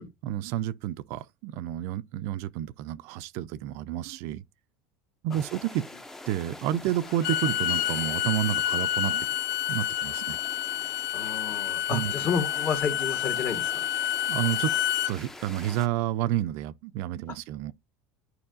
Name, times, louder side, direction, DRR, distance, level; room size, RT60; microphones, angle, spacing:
voice 1, 0.2-4.4 5.2-5.9 6.3-9.3 9.7-10.4 11.9-12.1 14.3-14.7 15.1-17.7, right 12 dB, 65° right, 0.4 m, -30 dB
sound 1, 5.3-15.9, left 1 dB, 10° left, 0.5 m, -45 dB
Bowed string instrument, 7.1-15.1, left 12 dB, 70° left, 0.6 m, -29 dB
voice 2, 11.1-13.9, left 6 dB, 40° left, 1.5 m, -31 dB
11.0 x 4.7 x 2.5 m
supercardioid pair, 135°, 5 cm